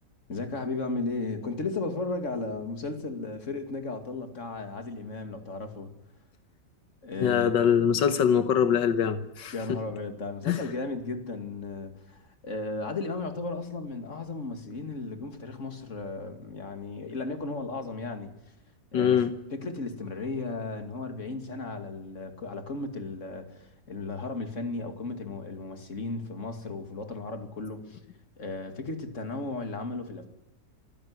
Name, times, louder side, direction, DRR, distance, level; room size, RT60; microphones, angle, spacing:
voice 1, 0.3-5.9 7.0-7.5 9.5-18.3 18.9-19.2 19.5-28.0 28.4-30.3, left 3 dB, 45° left, 2.7 m, -35 dB
voice 2, 7.2-9.8 10.5-10.7 18.9-19.3, left 8 dB, 85° left, 1.7 m, -23 dB
24.5 x 15.5 x 9.7 m
omnidirectional pair, 1.9 m